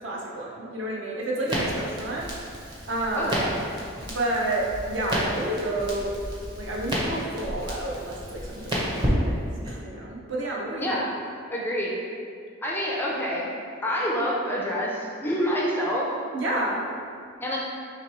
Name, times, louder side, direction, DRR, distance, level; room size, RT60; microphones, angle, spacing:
voice 1, 0.0-2.3 2.9-3.5 4.1-6.1 6.6-9.5 9.8-11.0 16.3-16.8, right 1 dB, 60° right, -3 dB, 0.6 m, -30 dB
Crackle, 1.5-9.8, equal, 20° right, 0.7 m, -31 dB
voice 2, 3.2-3.6 10.8-11.2 11.5-11.9 12.6-13.6 13.8-16.1 17.4-17.6, equal, 10° left, -4 dB, 0.3 m, -27 dB
3.0 x 2.9 x 4.5 m, 2.3 s
head